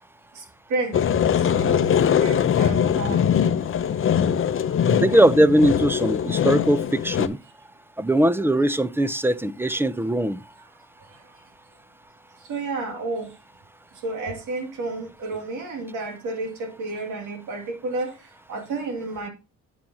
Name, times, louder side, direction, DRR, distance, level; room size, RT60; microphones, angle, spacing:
voice 1, 0.3-1.0 1.3-3.4 4.5-4.6 4.9-5.0 11.1-11.2 12.4-13.3 13.9-19.3, right 3 dB, 85° right, 2.5 m, -31 dB
sound 1, 0.9-7.3, left 8 dB, 45° left, 0.7 m, -21 dB
voice 2, 5.0-7.4 8.0-10.4, right 1 dB, 5° right, 0.6 m, -20 dB
10.0 x 7.4 x 2.8 m
cardioid pair, 90°, 30 cm